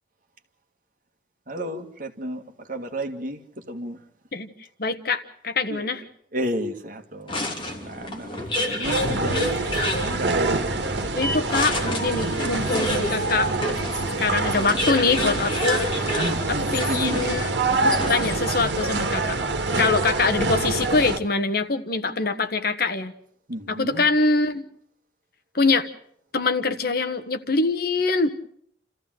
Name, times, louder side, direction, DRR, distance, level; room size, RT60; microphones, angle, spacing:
voice 1, 1.5-4.0 5.7-5.9 6.3-10.4 12.1-12.3 16.1-17.4 23.5-24.1, equal, 50° right, 2.0 m, -32 dB
voice 2, 4.8-6.0 11.0-13.5 14.2-16.2 16.7-17.5 18.1-19.5 19.8-23.1 23.7-24.7 25.5-25.9 26.3-28.3, left 3 dB, 60° left, 1.3 m, -24 dB
sound 1, 7.3-18.6, left 1 dB, 30° left, 3.1 m, -29 dB
sound 2, 8.8-21.2, right 3 dB, 75° right, 1.8 m, -26 dB
29.0 x 14.5 x 7.8 m
head